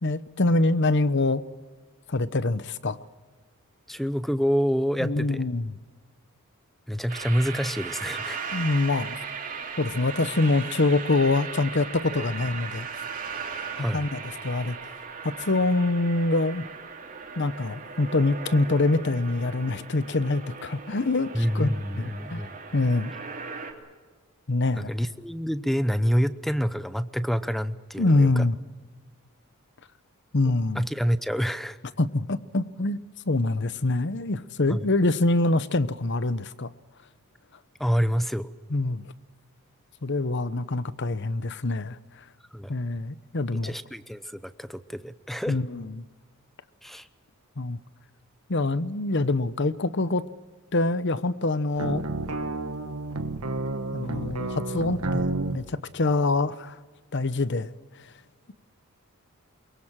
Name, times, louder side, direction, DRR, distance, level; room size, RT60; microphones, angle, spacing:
voice 1, 0.0-1.4 2.1-3.0 5.0-5.8 8.5-9.2 9.8-12.9 13.9-14.8 15.2-16.6 17.4-21.7 22.0-22.4 22.7-23.1 24.5-24.9 28.0-28.6 30.3-30.8 32.0-33.0 33.3-36.7 38.7-39.0 40.0-42.0 42.7-43.7 45.5-46.0 47.6-47.8 48.5-50.3 50.7-52.0 53.9-56.8 57.1-57.7, left 2 dB, 50° left, 0.9 m, -25 dB
voice 2, 3.9-5.4 6.9-8.4 12.1-12.3 13.8-14.1 21.3-22.5 24.8-28.5 30.4-31.8 34.7-34.9 37.8-38.5 42.5-42.7 43.6-45.6 46.8-47.1, equal, ahead, 0.7 m, -27 dB
sound 1, 7.1-23.7, right 5 dB, 35° right, 3.1 m, -38 dB
sound 2, 51.8-55.6, right 2 dB, 85° right, 1.5 m, -30 dB
23.5 x 22.5 x 7.4 m
head